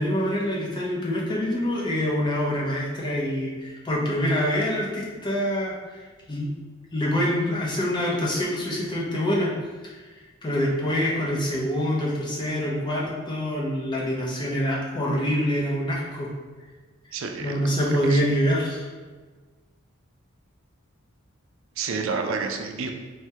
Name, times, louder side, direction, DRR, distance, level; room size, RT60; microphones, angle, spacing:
voice 1, 0.0-6.0 6.3-6.5 6.9-9.6 9.8-10.0 10.4-16.3 17.4-18.9, equal, 20° left, -4 dB, 0.4 m, -25 dB
voice 2, 17.1-18.2 21.8-22.9, right 4 dB, 65° right, 4 dB, 0.4 m, -30 dB
3.3 x 2.1 x 2.7 m, 1.4 s
head